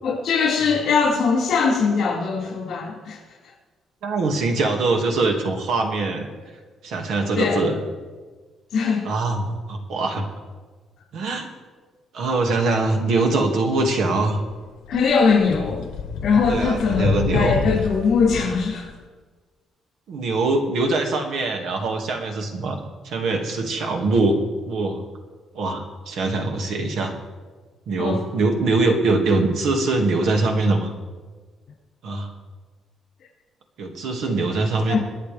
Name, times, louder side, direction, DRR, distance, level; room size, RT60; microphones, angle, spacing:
voice 1, 0.0-3.2 7.4-7.6 8.7-9.0 14.9-15.9 16.2-17.1 17.3-18.9 28.0-28.2 34.9-35.0, left 5 dB, 50° left, -9 dB, 5.7 m, -21 dB
voice 2, 4.0-6.3 6.8-7.8 9.0-10.3 11.1-11.5 12.1-14.4 16.5-17.6 20.1-22.8 23.0-24.4 24.7-25.0 25.5-27.1 27.9-30.9 32.0-32.3 33.8-35.0, right 3 dB, 65° right, 3 dB, 2.1 m, -22 dB
sound 1, 14.6-14.7 14.9-18.9, left 6 dB, 80° left, 1.3 m, -28 dB
27.5 x 9.8 x 3.5 m, 1.4 s
cardioid pair, 175°, 0 cm